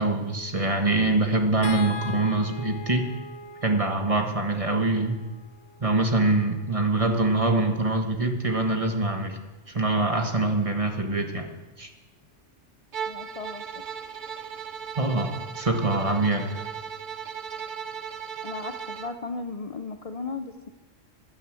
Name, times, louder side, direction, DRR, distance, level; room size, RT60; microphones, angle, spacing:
voice 1, 0.0-3.1 3.6-5.2 5.8-9.3 9.7-11.5 11.8-11.9 15.0-15.3 15.6-16.5, right 2 dB, 30° right, 4 dB, 1.5 m, -24 dB
sound 1, 1.6-7.9 9.5-9.6 10.0-10.2, left 3 dB, 80° left, 1.5 m, -42 dB
Bowed string instrument, 12.9-19.2, right 7 dB, 45° right, 0.8 m, -37 dB
voice 2, 13.1-13.6 18.4-20.7, left 3 dB, 35° left, 7 dB, 0.6 m, -36 dB
15.5 x 9.8 x 7.7 m, 1.2 s
omnidirectional pair, 1.3 m